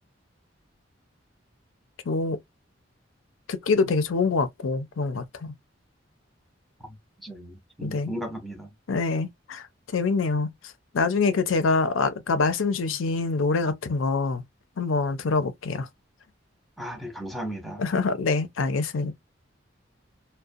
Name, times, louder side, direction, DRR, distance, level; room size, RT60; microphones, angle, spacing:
voice 1, 2.1-2.4 3.5-5.5 7.8-8.1 8.9-9.7 9.9-10.5 10.9-14.4 14.8-15.9 17.8-19.1, left 4 dB, 90° left, 0.5 m, -25 dB
voice 2, 7.2-8.7 16.8-17.8, right 1 dB, ahead, 0.6 m, -36 dB
2.4 x 2.1 x 2.5 m
head